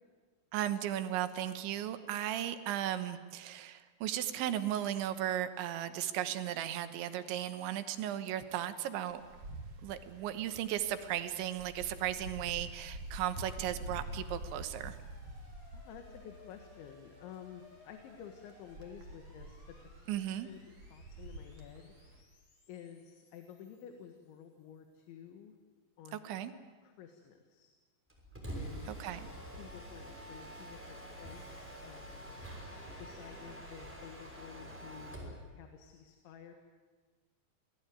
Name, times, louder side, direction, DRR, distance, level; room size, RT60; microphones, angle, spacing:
voice 1, 0.5-9.2 9.8-15.0 20.1-20.5 26.1-26.5 28.9-29.2, right 11 dB, 80° right, 10 dB, 3.4 m, -36 dB
Wind, 9.1-22.2, right 1 dB, 45° right, 2.5 m, -47 dB
sound 1, 12.6-24.9, left 4 dB, 55° left, 5.9 m, -63 dB
voice 2, 15.7-19.8 20.1-21.9 22.7-25.6 26.0-26.2 26.8-27.7 28.4-29.0 29.5-32.3 33.0-36.5, left 8 dB, 75° left, 5 dB, 3.9 m, -52 dB
Mechanisms, 28.1-35.4, right 1 dB, 5° right, 5.6 m, -46 dB
27.0 x 19.0 x 9.3 m, 1.4 s
omnidirectional pair, 5.4 m